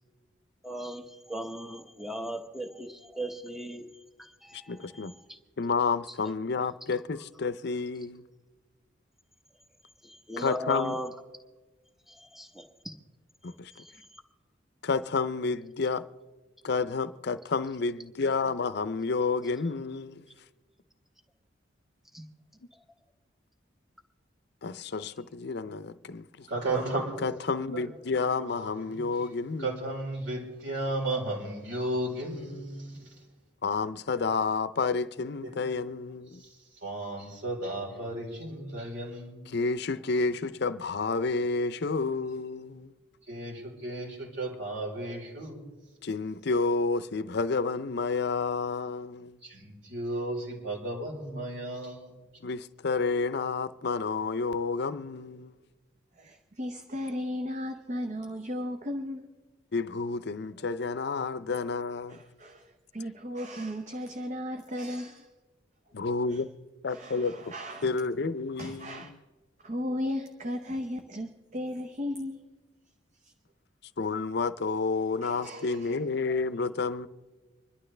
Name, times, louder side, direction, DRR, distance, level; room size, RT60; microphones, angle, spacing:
voice 1, 0.6-1.0 1.3-3.9 4.4-5.0 10.1-11.1 12.3-12.9, equal, ahead, 1.0 m, -37 dB
voice 2, 4.5-5.1 5.6-8.2 10.4-11.0 13.4-13.7 14.8-16.0 16.6-20.3 24.6-26.5 27.2-29.9 33.6-36.4 39.5-42.9 46.0-49.4 52.4-55.5 59.7-62.2 65.9-66.5 66.8-67.5 67.8-69.2 74.0-77.1, left 4 dB, 60° left, 0.6 m, -30 dB
voice 3, 26.4-27.3 27.7-27.9 28.4-29.2 29.6-33.2 35.4-35.7 36.3-39.6 43.3-45.7 49.4-52.2, right 2 dB, 70° right, 4.1 m, -34 dB
voice 4, 56.2-59.3 62.1-65.3 66.3-66.4 66.9-67.9 68.6-69.1 69.6-72.5 74.9-76.0 76.3-76.4 76.8-76.9, left 1 dB, 40° right, 0.8 m, -36 dB
26.0 x 11.5 x 3.3 m
head